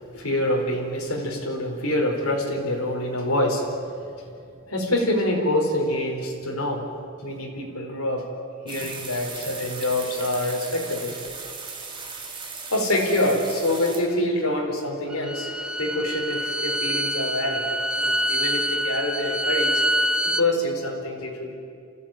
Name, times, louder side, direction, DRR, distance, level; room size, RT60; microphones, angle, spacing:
voice 1, 0.1-3.6 4.7-6.9 7.2-8.2 8.6-11.2 12.7-17.7 18.0-19.7 20.2-21.5, left 1 dB, 70° left, -1 dB, 4.4 m, -26 dB
sound 1, 8.7-14.0, right 4 dB, 25° right, 3.2 m, -37 dB
Bowed string instrument, 15.1-20.5, right 1 dB, 5° right, 0.5 m, -26 dB
28.5 x 15.5 x 9.1 m, 2.4 s
head